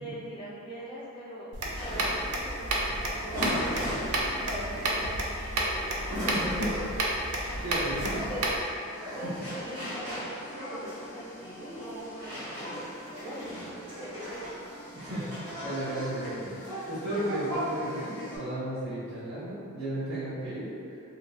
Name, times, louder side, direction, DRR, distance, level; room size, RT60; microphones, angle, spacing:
voice 1, 0.0-6.2 8.3-8.6 9.1-12.8 13.2-13.6 14.0-14.5, right 1 dB, 25° left, -9 dB, 0.6 m, -43 dB
sound 1, 1.5-8.6, right 1 dB, 80° right, 0.4 m, -31 dB
sound 2, 1.8-18.4, equal, 30° right, 1.2 m, -37 dB
voice 2, 6.3-7.1 7.5-8.3 9.2-9.3 14.9-20.7, right 1 dB, 55° right, -17 dB, 0.9 m, -35 dB
2.8 x 2.7 x 2.3 m, 2.4 s
head